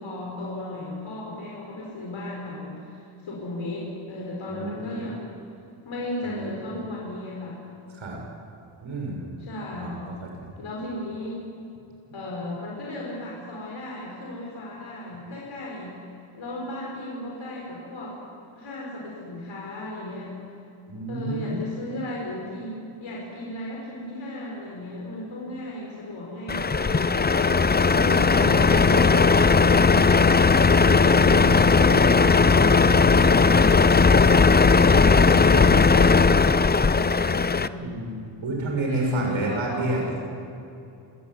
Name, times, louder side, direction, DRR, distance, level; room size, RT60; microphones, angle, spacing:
voice 1, 0.0-5.3 5.8-7.6 9.4-10.1 10.6-11.5 12.1-16.0 16.3-18.2 18.6-20.4 21.1-30.2 34.1-37.9 38.9-40.2, left 1 dB, 70° left, -3 dB, 6.0 m, -35 dB
voice 2, 4.5-5.0 6.2-6.5 7.9-8.2 8.8-9.3 9.8-10.5 20.9-21.6 31.2-31.4 37.8-40.0, right 2 dB, 75° right, 0 dB, 7.6 m, -30 dB
Truck, 26.5-37.7, left 4 dB, 20° left, 0.6 m, -17 dB
26.5 x 15.5 x 9.7 m, 2.7 s
cardioid pair, 90°, 48 cm